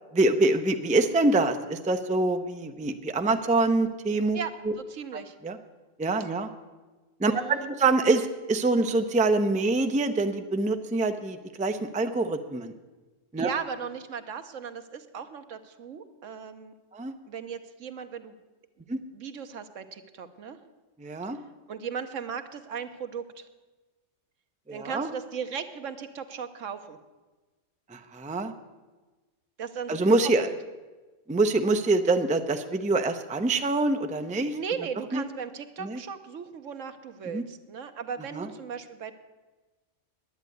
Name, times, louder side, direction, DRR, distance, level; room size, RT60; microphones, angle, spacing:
voice 1, 0.1-4.4 5.4-5.6 6.0-6.5 7.2-12.7 13.3-13.5 16.9-17.1 18.9-19.0 21.0-21.4 24.7-25.1 27.9-28.5 29.9-30.5 31.3-34.5 35.1-35.2 35.8-36.0 37.3-37.4 38.3-38.5, right 2 dB, 10° right, 7 dB, 0.4 m, -25 dB
voice 2, 4.3-5.3 7.3-7.7 13.4-16.7 17.3-18.3 19.1-20.6 21.7-23.5 24.7-27.0 29.6-30.1 30.4-30.5 34.5-39.1, right 7 dB, 80° right, 9 dB, 1.3 m, -37 dB
10.5 x 9.5 x 9.2 m, 1.2 s
omnidirectional pair, 1.3 m